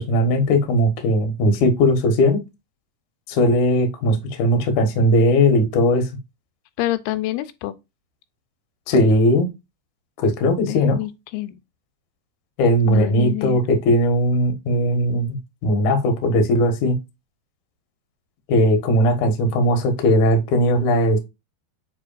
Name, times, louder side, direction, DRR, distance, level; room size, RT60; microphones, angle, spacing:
voice 1, 0.0-2.4 3.3-6.1 8.9-9.5 10.2-11.0 12.6-17.0 18.5-21.2, equal, 60° left, 2.1 m, -18 dB
voice 2, 6.8-7.7 10.6-11.6 12.8-13.6, left 16 dB, 85° left, 3.0 m, -27 dB
8.5 x 4.6 x 2.5 m
omnidirectional pair, 5.3 m